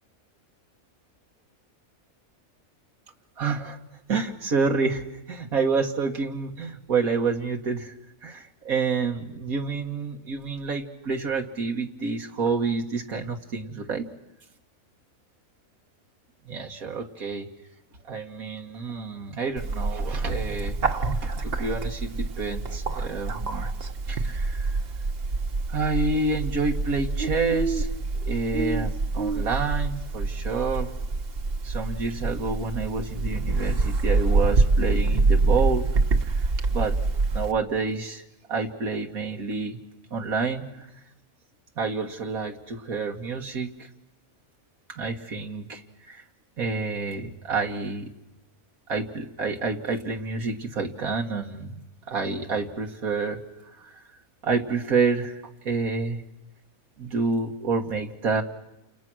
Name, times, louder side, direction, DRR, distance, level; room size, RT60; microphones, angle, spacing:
voice 1, 3.4-3.8 4.1-7.9 8.2-14.1 16.5-17.5 18.1-20.8 21.2-23.7 24.1-24.8 25.7-27.9 28.3-30.9 31.6-35.9 36.2-36.4 36.7-36.9 37.3-39.8 40.1-40.9 41.8-43.9 45.0-46.2 46.6-48.1 48.9-51.8 52.1-53.4 53.8-54.0 54.4-55.3 55.7-56.2 57.0-58.4, right 4 dB, 85° right, 2 dB, 2.1 m, -28 dB
Bird, 19.6-37.5, right 3 dB, 45° right, 1.2 m, -26 dB
29.5 x 28.0 x 6.3 m, 0.94 s
omnidirectional pair, 1.5 m